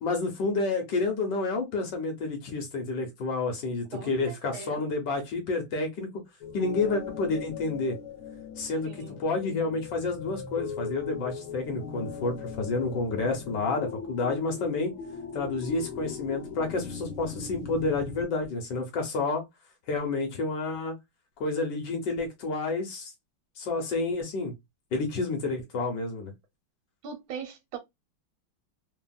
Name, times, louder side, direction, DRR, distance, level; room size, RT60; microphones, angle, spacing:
voice 1, 0.0-6.1 6.5-8.0 8.6-8.9 9.2-14.9 15.3-19.4 19.9-20.9 21.4-23.1 23.6-24.5 24.9-26.3, left 3 dB, 65° left, 1.2 m, -29 dB
voice 2, 3.9-4.8 8.8-9.2 27.0-27.8, right 6 dB, 75° right, 1.4 m, -40 dB
sound 1, 6.4-18.2, left 6 dB, 80° left, 1.5 m, -39 dB
3.4 x 2.2 x 2.2 m
omnidirectional pair, 2.3 m